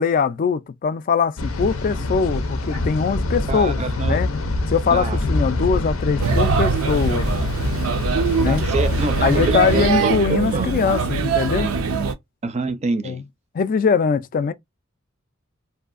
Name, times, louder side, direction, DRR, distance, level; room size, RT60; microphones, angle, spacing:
voice 1, 0.0-4.3 4.7-7.3 8.4-8.6 9.2-11.7 13.0-13.2 13.5-14.5, left 6 dB, 40° left, 0.3 m, -22 dB
sound 1, 1.4-9.9, left 2 dB, 85° left, 0.6 m, -25 dB
voice 2, 3.5-4.2 4.9-5.2 8.5-10.1 10.5-10.7 12.4-13.2, right 3 dB, 30° right, 0.4 m, -26 dB
Male speech man speaking / Child speech kid speaking / Chatter, 6.2-12.1, right 5 dB, 90° right, 0.5 m, -22 dB
2.7 x 2.4 x 2.4 m
head